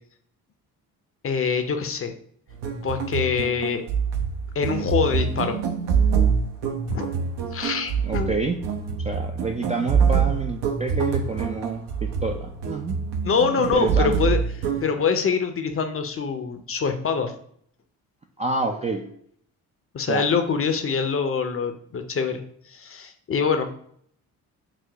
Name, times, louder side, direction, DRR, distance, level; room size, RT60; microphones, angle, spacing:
voice 1, 1.2-2.1 2.8-3.8 4.5-5.6 6.9-7.1 7.5-8.3 13.2-14.4 14.8-17.3 19.9-22.4 22.7-23.7, left 6 dB, 30° left, 7 dB, 0.6 m, -24 dB
sound 1, 2.5-14.9, right 6 dB, 65° right, 0.7 m, -25 dB
voice 2, 8.0-8.6 9.0-13.0 13.7-14.1 18.4-19.1 20.1-20.3, right 3 dB, 15° right, 2 dB, 0.3 m, -28 dB
5.9 x 2.1 x 2.8 m, 0.64 s
hypercardioid pair, 50°, 45 cm